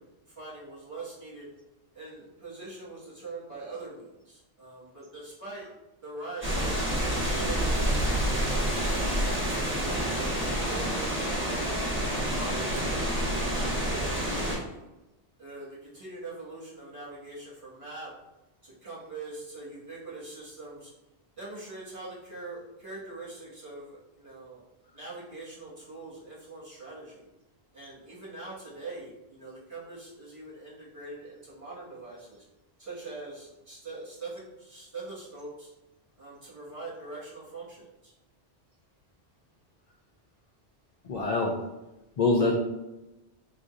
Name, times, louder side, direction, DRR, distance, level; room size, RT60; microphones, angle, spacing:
voice 1, 0.0-1.5 1.9-5.7 6.0-6.8 7.2-11.7 12.2-14.8 15.4-18.1 18.6-20.9 21.4-24.7 24.9-27.3 27.7-32.4 32.8-35.7 36.2-38.1, right 2 dB, 30° right, -8 dB, 1.6 m, -43 dB
sound 1, 6.4-14.6, equal, 10° right, 1.0 m, -28 dB
voice 2, 41.0-41.6 42.2-42.5, left 3 dB, 55° left, 0 dB, 0.5 m, -24 dB
4.0 x 3.8 x 2.5 m, 0.99 s
omnidirectional pair, 1.1 m